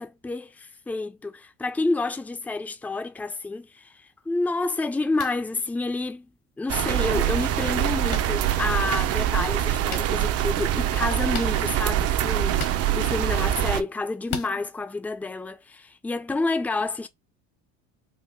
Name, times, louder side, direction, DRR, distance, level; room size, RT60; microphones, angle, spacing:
voice 1, 0.0-6.3 6.6-12.6 12.9-17.1, left 3 dB, 5° left, 0.5 m, -29 dB
sound 1, 5.1-5.4 6.7-6.8 8.1-8.2 9.9-10.0 11.3-11.5 12.5-12.8 14.3-14.5, left 8 dB, 70° left, 1.4 m, -34 dB
sound 2, 6.7-13.8, right 12 dB, 45° right, 0.6 m, -24 dB
3.7 x 2.6 x 3.7 m
supercardioid pair, 100°, 34 cm